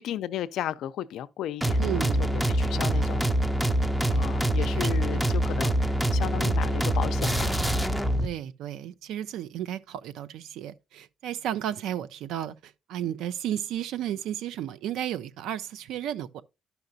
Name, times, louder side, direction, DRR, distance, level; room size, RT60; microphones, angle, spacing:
voice 1, 0.0-1.8 2.3-3.2 4.1-7.6, left 11 dB, 80° left, 0.4 m, -34 dB
sound 1, 1.6-8.3, right 1 dB, 5° right, 0.6 m, -25 dB
voice 2, 1.8-2.4 2.7-3.3 3.7-3.8 4.1-4.2 4.6-5.2 8.2-16.4, right 11 dB, 90° right, 0.4 m, -34 dB
11.5 x 5.8 x 2.6 m
cardioid pair, 90°, 0 cm